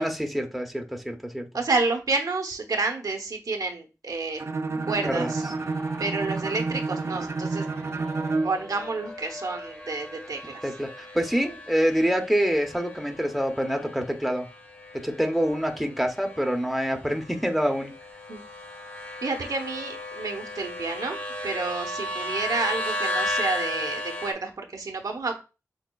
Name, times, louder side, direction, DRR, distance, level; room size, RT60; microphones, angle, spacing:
voice 1, 0.0-1.5 5.0-5.3 10.6-10.9 11.1-14.5 15.0-17.9, equal, ahead, 3 dB, 0.7 m, -26 dB
voice 2, 1.5-4.4 4.9-5.4 6.0-7.7 8.4-10.6 18.3-18.4 19.2-21.2 21.4-25.4, right 3 dB, 80° right, 3 dB, 0.9 m, -29 dB
Bowed string instrument, 4.4-8.6, right 3 dB, 50° right, 0.5 m, -29 dB
sound 1, 4.6-24.3, left 1 dB, 30° left, 1.8 m, -36 dB
6.4 x 3.5 x 2.3 m, 0.30 s
wide cardioid pair, 100°, 6 cm